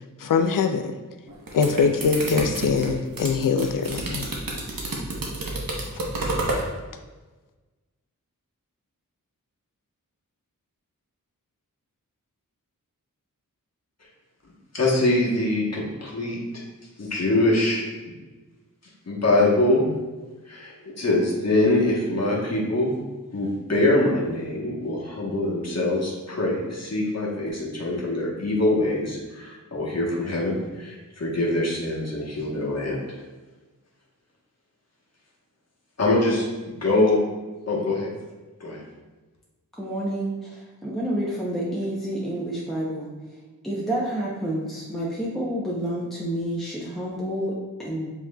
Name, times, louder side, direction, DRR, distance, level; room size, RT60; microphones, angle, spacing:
voice 1, 0.2-0.9 1.5-4.3, left 5 dB, 70° left, 7 dB, 0.5 m, -22 dB
sound 1, 1.3-6.7, right 2 dB, 80° right, 0.9 m, -29 dB
voice 2, 14.7-16.6 17.0-18.1 19.1-19.9 20.4-22.9 23.3-33.2 36.0-37.2 37.7-38.1 38.6-38.8, left 2 dB, 50° left, -4 dB, 1.1 m, -24 dB
voice 3, 39.7-43.1 43.6-48.1, right 1 dB, ahead, -5 dB, 0.7 m, -29 dB
7.3 x 3.0 x 2.3 m, 1.2 s
wide cardioid pair, 85°, 34 cm